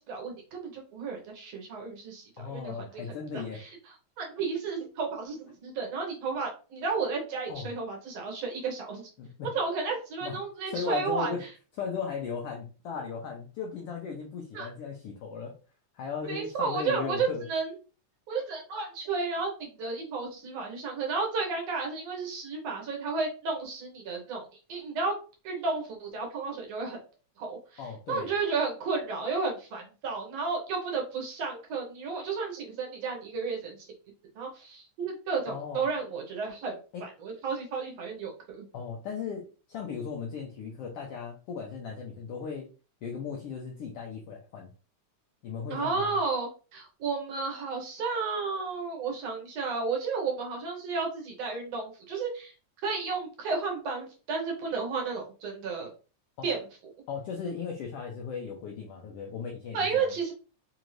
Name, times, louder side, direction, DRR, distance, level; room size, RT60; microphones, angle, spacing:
voice 1, 0.0-3.0 3.3-3.8 4.2-9.1 9.5-11.5 14.5-14.7 16.3-17.7 18.3-25.1 25.4-27.0 27.4-27.8 28.1-33.9 34.4-38.7 45.7-52.5 52.8-55.9 56.4-56.6 59.7-60.3, right 4 dB, 65° right, 0 dB, 1.9 m, -32 dB
voice 2, 2.4-3.6 7.5-7.7 9.2-9.5 10.2-10.4 10.7-11.4 11.8-15.6 15.9-17.4 27.8-28.3 35.5-35.8 36.9-37.1 38.7-42.7 43.0-44.7 45.4-46.1 56.4-56.5 57.1-60.1, left 6 dB, 80° left, 0 dB, 1.3 m, -37 dB
4.8 x 2.6 x 3.0 m, 0.35 s
omnidirectional pair, 3.4 m